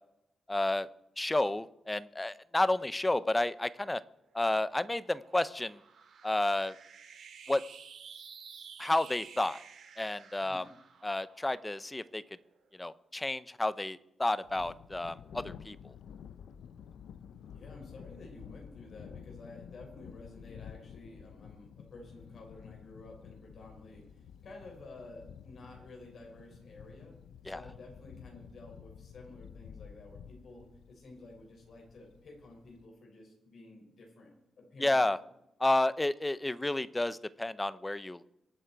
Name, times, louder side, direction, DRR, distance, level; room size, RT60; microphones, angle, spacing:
voice 1, 0.5-0.9 1.2-4.0 4.3-5.8 6.2-6.7 7.5-7.6 8.8-9.6 10.0-10.6 11.0-12.2 12.8-15.8 27.5-27.6 34.8-35.2 35.6-38.2, left 2 dB, 15° left, 16 dB, 0.6 m, -31 dB
sound 1, 4.1-12.7, right 6 dB, 70° right, 2.3 m, -53 dB
voice 2, 10.4-10.7 17.5-24.0 24.4-27.2 27.4-35.1, left 2 dB, 55° left, 0 dB, 6.1 m, -52 dB
Thunder, 14.4-32.9, left 8 dB, 85° left, 0.7 m, -51 dB
25.0 x 8.7 x 4.6 m, 0.88 s
wide cardioid pair, 130°, 0 cm